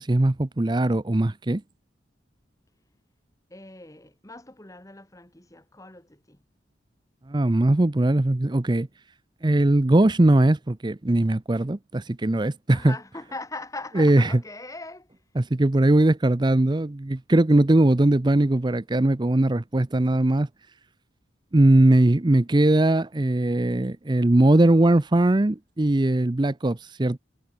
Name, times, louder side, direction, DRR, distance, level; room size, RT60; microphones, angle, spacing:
voice 1, 0.0-1.6 7.3-8.9 9.4-12.9 14.0-14.4 15.4-20.5 21.5-27.2, right 1 dB, 25° right, 0.6 m, -20 dB
voice 2, 3.5-6.4 12.7-15.1, left 2 dB, 15° left, 1.8 m, -40 dB
head